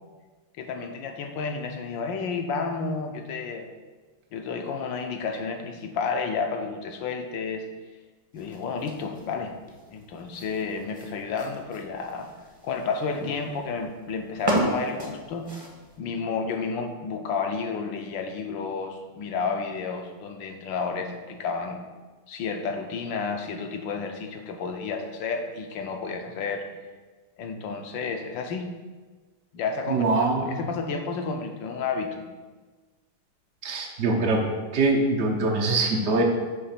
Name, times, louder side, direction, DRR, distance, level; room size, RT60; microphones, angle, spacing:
voice 1, 0.6-3.7 4.3-7.7 8.3-9.5 9.9-12.3 12.6-15.5 16.0-21.8 22.3-26.7 27.4-28.7 29.5-32.3, left 5 dB, 70° left, 5 dB, 1.4 m, -31 dB
sound 1, 8.3-16.0, right 1 dB, 20° right, 0.6 m, -34 dB
voice 2, 29.9-30.6 33.6-34.4 34.7-36.2, right 3 dB, 65° right, 0 dB, 0.6 m, -23 dB
9.4 x 3.2 x 5.8 m, 1.3 s
omnidirectional pair, 2.2 m